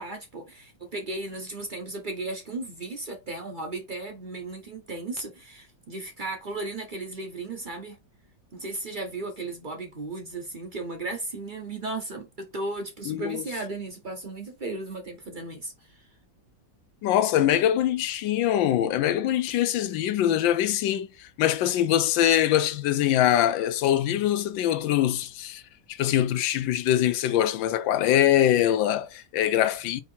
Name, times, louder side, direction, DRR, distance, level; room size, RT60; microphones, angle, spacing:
voice 1, 0.0-8.0 8.5-16.0, right 2 dB, 55° right, 0.5 m, -35 dB
voice 2, 13.1-13.4 17.0-25.6 25.9-30.0, left 11 dB, 90° left, 1.4 m, -23 dB
4.5 x 2.7 x 4.3 m
omnidirectional pair, 2.0 m